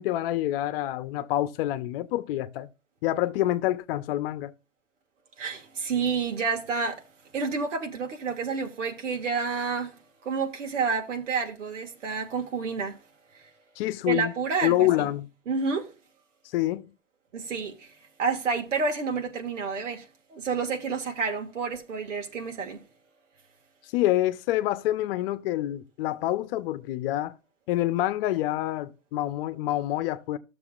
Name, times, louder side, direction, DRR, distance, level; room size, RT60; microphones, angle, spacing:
voice 1, 0.0-2.7 3.0-4.5 13.8-14.3 14.6-15.3 16.5-16.9 23.9-27.3 27.7-30.4, left 14 dB, 50° left, 0.9 m, -27 dB
voice 2, 5.4-7.0 7.3-9.9 10.2-13.0 13.3-13.4 14.1-15.1 15.5-15.9 17.3-17.9 18.2-22.8, right 5 dB, 80° right, 2.6 m, -29 dB
13.0 x 6.9 x 2.5 m
hypercardioid pair, 120°, 37 cm